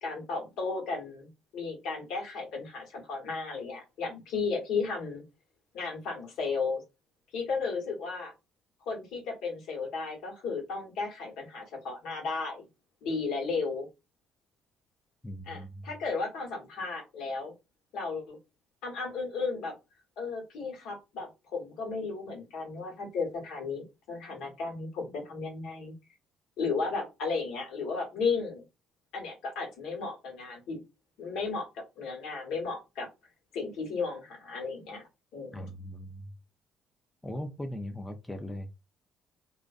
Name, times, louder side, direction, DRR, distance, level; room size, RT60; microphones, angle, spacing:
voice 1, 0.0-5.2 5.7-6.8 7.3-8.3 8.9-12.6 13.0-13.9 15.5-17.5 17.9-18.4 18.8-19.7 20.2-25.9 26.6-28.6 29.1-30.8 31.2-33.1 33.5-35.0 35.3-35.7, left 4 dB, 75° left, 1.1 m, -34 dB
voice 2, 15.2-15.9 35.5-36.3 37.2-38.8, equal, 10° left, 0.5 m, -39 dB
2.4 x 2.2 x 2.4 m
supercardioid pair, 65°, 0 cm